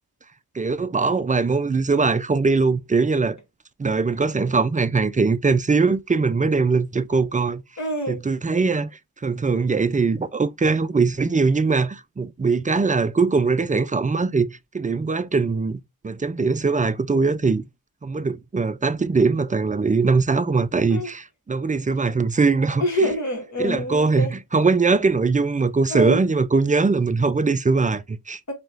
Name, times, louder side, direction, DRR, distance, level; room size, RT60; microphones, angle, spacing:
voice 1, 0.5-3.4 3.8-7.6 8.1-8.9 9.2-17.6 18.0-23.1 23.6-28.4, right 4 dB, 20° right, 0.3 m, -21 dB
voice 2, 7.8-8.2 20.9-21.1 22.8-24.3 25.9-26.2 28.5-28.6, equal, 45° left, 1.8 m, -25 dB
4.2 x 3.0 x 2.7 m
wide cardioid pair, 90°, 39 cm